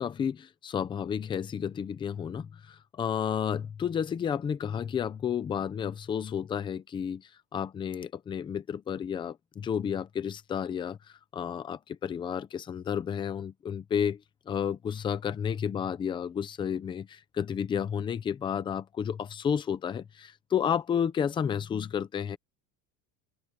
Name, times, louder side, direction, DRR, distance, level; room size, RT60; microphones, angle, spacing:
voice 1, 0.0-11.0 11.3-22.4, left 8 dB, 10° left, 0.5 m, -31 dB
open air
cardioid pair, 180°, 42 cm